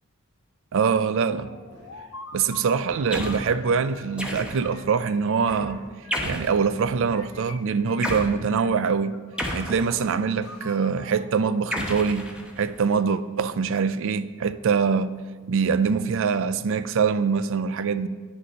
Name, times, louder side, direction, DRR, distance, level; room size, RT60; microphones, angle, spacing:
voice 1, 0.7-1.5 2.3-5.8 6.2-9.2 9.5-12.3 12.6-15.1 15.5-18.1, right 5 dB, 60° right, 0.4 m, -24 dB
sound 1, 1.4-4.2 4.6-6.4 7.1-8.2 8.5-9.9 10.4-12.2, left 3 dB, 75° left, 0.8 m, -45 dB
sound 2, 1.7-2.0 2.4-3.2 3.6-4.8 5.5-5.8 6.2-7.5, right 1 dB, 80° right, 3.3 m, -44 dB
sound 3, 3.1-3.5 4.2-4.8 6.1-6.6 8.0-8.3 9.4-10.3 11.7-12.8, equal, 5° right, 1.1 m, -31 dB
9.4 x 6.6 x 5.4 m
head